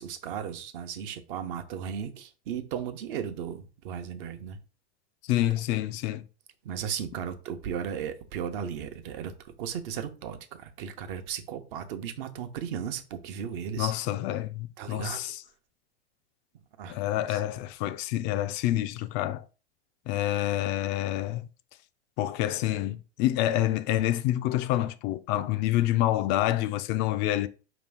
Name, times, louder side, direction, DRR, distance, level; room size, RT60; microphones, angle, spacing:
voice 1, 0.0-4.6 6.6-9.3 9.6-13.9 14.8-15.2 16.8-17.0 17.3-17.4, right 8 dB, 55° right, 0.9 m, -35 dB
voice 2, 5.3-6.2 13.8-15.4 16.9-19.4 20.1-21.4 22.2-27.5, left 14 dB, 35° left, 0.4 m, -27 dB
5.0 x 3.0 x 3.4 m
hypercardioid pair, 105°, 33 cm